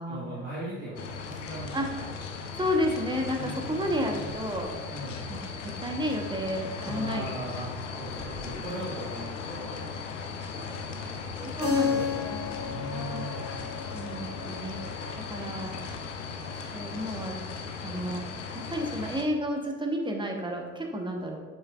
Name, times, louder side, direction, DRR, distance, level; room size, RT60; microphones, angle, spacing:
voice 1, 0.0-2.1 3.4-4.3 4.9-5.2 6.8-9.7 10.5-11.2 11.7-13.5, right 1 dB, 85° right, -9 dB, 1.6 m, -39 dB
sound 1, 1.0-19.3, left 5 dB, 80° left, 0.7 m, -38 dB
voice 2, 2.5-4.7 5.3-7.2 9.0-9.1 11.4-12.5 12.8-15.8 16.7-17.4 17.8-18.2 18.5-21.4, equal, 15° right, 2 dB, 1.1 m, -32 dB
sound 2, 3.2-4.9 7.5-9.0, left 2 dB, 25° left, 1.5 m, -50 dB
Keyboard (musical), 11.6-16.2, left 6 dB, 45° left, 1.6 m, -34 dB
7.0 x 6.9 x 2.4 m, 1.4 s
figure-of-eight pair, 55°, 37 cm